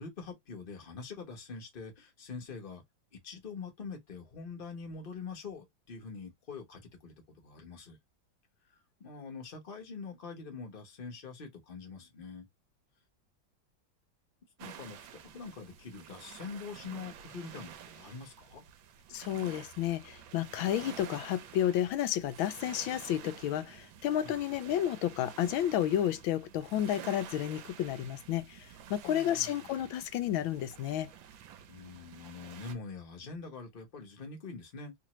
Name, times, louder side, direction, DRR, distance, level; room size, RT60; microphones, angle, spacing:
voice 1, 0.0-2.8 3.1-8.0 8.7-12.5 14.6-18.6 24.2-24.4 29.0-29.7 31.7-34.9, left 4 dB, 35° left, 1.0 m, -44 dB
sound 1, 14.6-32.7, right 9 dB, 80° right, 1.4 m, -50 dB
voice 2, 19.1-31.1, left 11 dB, 90° left, 1.4 m, -31 dB
3.5 x 2.6 x 3.0 m
omnidirectional pair, 2.1 m